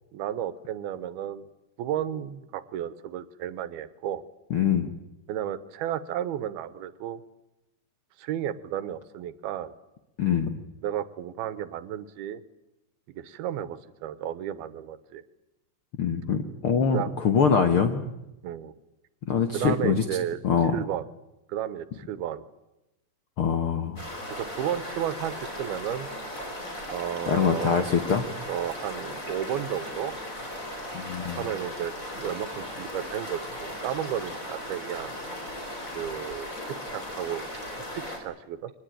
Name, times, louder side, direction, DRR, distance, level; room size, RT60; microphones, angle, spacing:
voice 1, 0.1-1.5 1.8-4.2 5.3-7.2 8.2-9.7 10.8-12.4 13.2-15.2 16.9-17.1 18.4-18.7 19.5-20.4 20.7-21.0 21.5-22.4 24.3-26.1 26.9-27.9 28.5-30.1 31.4-35.2 35.9-38.7, right 10 dB, 85° right, 14 dB, 2.9 m, -33 dB
voice 2, 4.5-4.9 10.2-10.6 16.0-18.0 19.3-20.0 20.4-20.7 23.4-24.0 27.2-28.3 30.9-31.4, left 6 dB, 65° left, 7 dB, 1.3 m, -24 dB
sound 1, 24.0-38.2, left 1 dB, 20° left, 4.9 m, -37 dB
24.0 x 20.0 x 9.3 m, 0.93 s
omnidirectional pair, 4.4 m